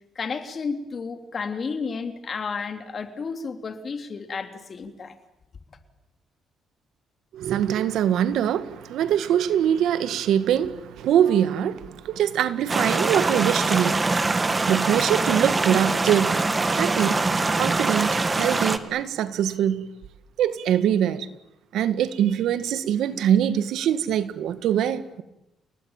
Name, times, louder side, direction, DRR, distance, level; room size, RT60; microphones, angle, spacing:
voice 1, 0.2-5.1, left 5 dB, 45° left, 3.3 m, -32 dB
voice 2, 7.3-19.8 20.4-21.3 21.7-25.2, right 10 dB, 80° right, 1.7 m, -23 dB
sound 1, 12.7-18.8, right 3 dB, 25° right, 1.9 m, -23 dB
29.5 x 19.0 x 9.1 m
cardioid pair, 90°, 0 cm